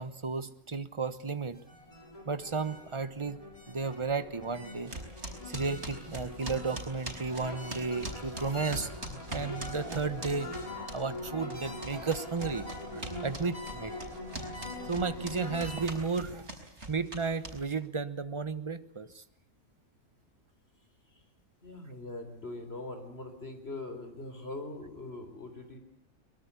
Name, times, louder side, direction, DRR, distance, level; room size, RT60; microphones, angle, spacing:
voice 1, 0.0-1.6 2.3-3.4 3.7-5.0 5.5-8.9 9.3-10.5 10.9-12.7 12.9-13.9 14.9-16.5 16.9-19.2, right 4 dB, 25° right, 13 dB, 1.1 m, -33 dB
sound 1, 1.5-15.9, left 1 dB, 25° left, 5.2 m, -43 dB
sound 2, 4.9-11.2 11.5-17.9, right 1 dB, 60° right, 5.2 m, -42 dB
voice 2, 21.6-25.8, left 2 dB, 50° left, 7 dB, 4.2 m, -42 dB
24.0 x 22.0 x 8.4 m, 0.73 s
omnidirectional pair, 1.3 m